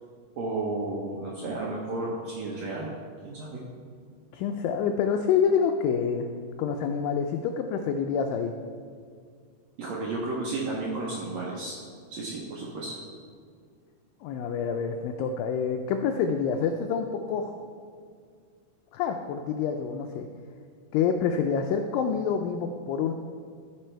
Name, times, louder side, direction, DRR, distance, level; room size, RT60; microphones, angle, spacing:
voice 1, 0.4-2.9 3.2-3.6 9.8-11.8 12.1-13.0, right 2 dB, 80° right, -4 dB, 1.5 m, -32 dB
voice 2, 4.3-6.3 6.6-8.5 14.2-17.5 18.9-20.3 20.9-23.1, left 6 dB, 85° left, 5 dB, 2.0 m, -27 dB
13.5 x 5.2 x 4.4 m, 2.1 s
omnidirectional pair, 4.5 m